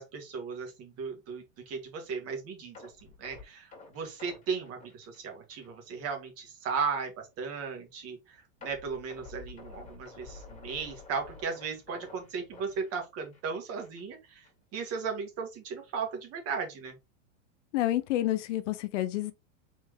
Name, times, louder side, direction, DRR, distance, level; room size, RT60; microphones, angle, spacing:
voice 1, 0.0-2.9 3.2-14.5 14.7-17.0, right 5 dB, 35° right, 1.8 m, -36 dB
sound 1, 2.7-5.8 6.1-6.3 6.7-6.8 8.6-13.5 13.8-14.0 14.4-14.5, left 4 dB, 20° left, 2.2 m, -50 dB
voice 2, 17.7-19.3, left 14 dB, 65° left, 0.7 m, -29 dB
4.5 x 3.3 x 3.2 m
supercardioid pair, 135°, 39 cm